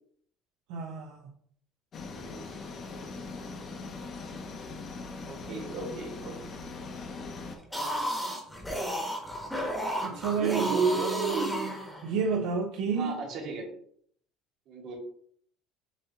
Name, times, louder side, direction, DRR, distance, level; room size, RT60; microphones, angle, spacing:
voice 1, 0.7-1.3 10.0-11.7 12.0-13.2, right 5 dB, 75° right, 0.6 m, -29 dB
sound 1, 1.9-7.6, left 3 dB, 30° left, 0.6 m, -41 dB
voice 2, 5.3-6.6 10.1-11.7 12.9-13.7 14.7-15.0, right 4 dB, 50° right, 1.5 m, -36 dB
sound 2, 7.6-12.3, equal, 5° left, 1.0 m, -33 dB
7.0 x 2.8 x 2.7 m
cardioid pair, 165°, 0 cm